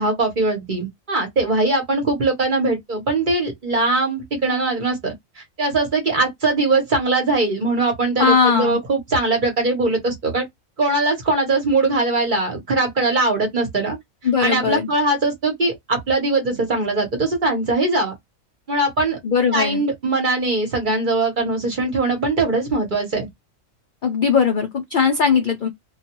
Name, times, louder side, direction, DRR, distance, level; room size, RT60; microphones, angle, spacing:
voice 1, 0.0-10.4 10.8-14.0 14.4-18.1 18.7-19.2 19.5-23.3, right 2 dB, 40° right, 0.9 m, -21 dB
voice 2, 8.2-8.8 14.2-14.9 19.2-19.8 24.0-25.7, left 6 dB, 65° left, 0.5 m, -19 dB
2.3 x 2.2 x 2.8 m
omnidirectional pair, 1.4 m